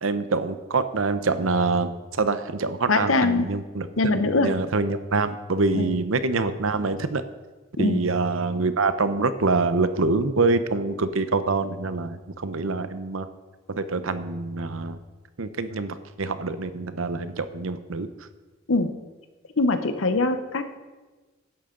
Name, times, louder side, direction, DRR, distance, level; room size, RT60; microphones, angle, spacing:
voice 1, 0.0-7.2 7.8-13.3 13.7-15.0 15.4-18.1, right 3 dB, 85° right, 11 dB, 0.8 m, -25 dB
voice 2, 2.9-3.5 4.0-4.5 5.7-5.9 7.8-8.0 18.7-18.9 19.6-20.8, left 2 dB, 80° left, 9 dB, 1.0 m, -22 dB
15.5 x 11.5 x 3.9 m, 1.3 s
head